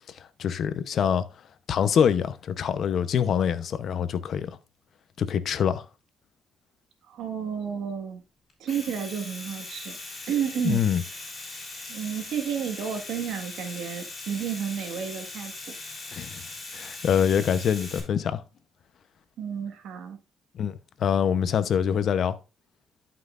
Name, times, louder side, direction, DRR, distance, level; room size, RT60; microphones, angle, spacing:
voice 1, 0.4-1.3 1.7-4.6 5.2-5.8 10.6-11.0 16.1-16.4 16.7-18.4 20.5-22.4, left 8 dB, 65° left, 0.8 m, -25 dB
voice 2, 7.1-8.2 8.6-10.0 10.3-11.1 11.9-15.5 19.4-20.2, right 8 dB, 80° right, 1.6 m, -31 dB
Domestic sounds home sounds, 8.5-18.0, left 2 dB, 25° left, 4.6 m, -40 dB
12.0 x 5.7 x 2.5 m
cardioid pair, 90°, 0 cm